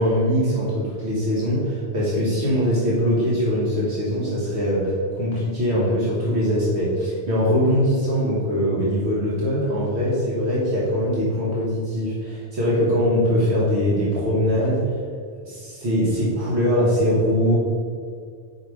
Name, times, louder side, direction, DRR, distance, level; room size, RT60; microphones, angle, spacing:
voice 1, 0.0-14.8 15.4-17.6, equal, 75° right, -6 dB, 1.6 m, -22 dB
4.9 x 4.8 x 4.8 m, 2.2 s
omnidirectional pair, 1.1 m